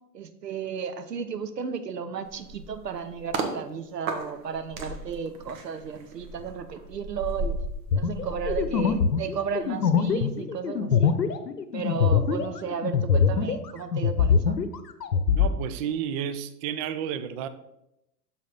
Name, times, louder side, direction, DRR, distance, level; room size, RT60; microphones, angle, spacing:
voice 1, 0.1-7.6 8.0-11.2 11.7-14.6, right 6 dB, 85° right, 10 dB, 0.9 m, -34 dB
sound 1, 2.3-3.5 4.1-9.6 10.0-10.2, right 2 dB, 55° right, 1.5 m, -35 dB
sound 2, 7.9-13.7 13.9-15.5, left 6 dB, 85° left, 0.8 m, -23 dB
voice 2, 15.3-17.5, right 9 dB, 25° right, 11 dB, 0.4 m, -31 dB
12.0 x 4.2 x 3.9 m, 0.84 s
hypercardioid pair, 100°, 48 cm